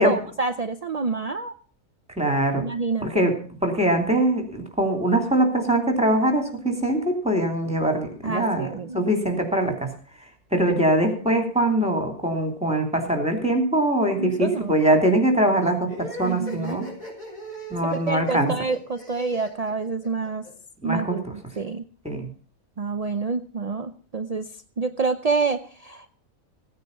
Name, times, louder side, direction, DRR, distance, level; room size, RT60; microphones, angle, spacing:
voice 1, 0.0-1.5 2.6-3.3 8.2-9.0 14.2-14.7 16.2-16.8 17.9-20.4 20.8-21.8 22.8-24.5 24.8-26.1, right 4 dB, 65° right, 8 dB, 0.3 m, -28 dB
voice 2, 2.2-2.6 3.0-3.3 3.6-8.7 8.9-9.9 10.5-16.9 17.7-18.5 20.8-21.3 22.0-22.3, right 1 dB, 5° right, 3 dB, 2.7 m, -22 dB
sound 1, 15.9-20.5, equal, 65° left, 6.5 m, -39 dB
16.0 x 9.4 x 5.4 m, 0.42 s
omnidirectional pair, 1.6 m